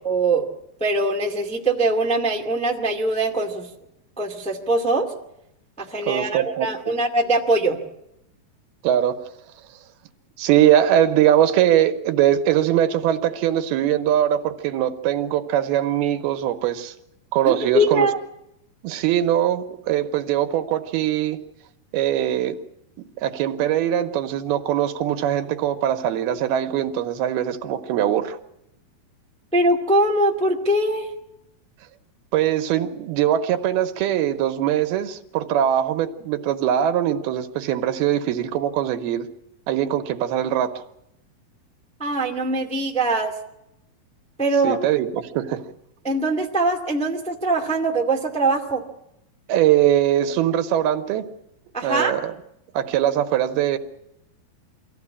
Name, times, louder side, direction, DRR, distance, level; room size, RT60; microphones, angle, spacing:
voice 1, 0.0-0.5 0.8-3.7 4.2-5.1 5.8-7.8 17.4-18.2 29.5-31.1 42.0-43.3 44.4-44.8 46.0-48.8 51.7-52.1, right 2 dB, 5° left, 1.1 m, -22 dB
voice 2, 6.1-6.9 8.8-9.2 10.4-16.9 17.3-18.1 18.8-21.4 21.9-22.6 23.2-28.4 32.3-39.3 39.7-40.8 44.6-45.7 49.5-51.3 51.8-52.3 52.7-53.8, right 11 dB, 90° right, 3.0 m, -21 dB
24.0 x 15.5 x 8.5 m
omnidirectional pair, 4.4 m